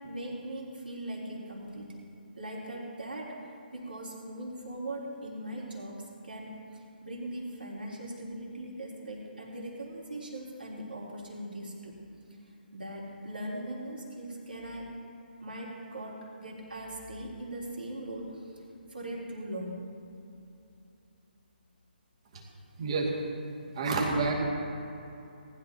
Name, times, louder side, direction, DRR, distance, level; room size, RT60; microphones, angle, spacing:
voice 1, 0.0-2.0 2.4-3.4 3.7-11.9 12.7-14.9 15.4-18.6 18.9-19.8 23.5-23.9, right 1 dB, 65° right, -4 dB, 3.5 m, -40 dB
voice 2, 22.8-23.1 23.8-24.3, right 3 dB, 35° right, -2 dB, 2.3 m, -28 dB
19.0 x 11.5 x 2.9 m, 2.7 s
figure-of-eight pair, 140°, 6 cm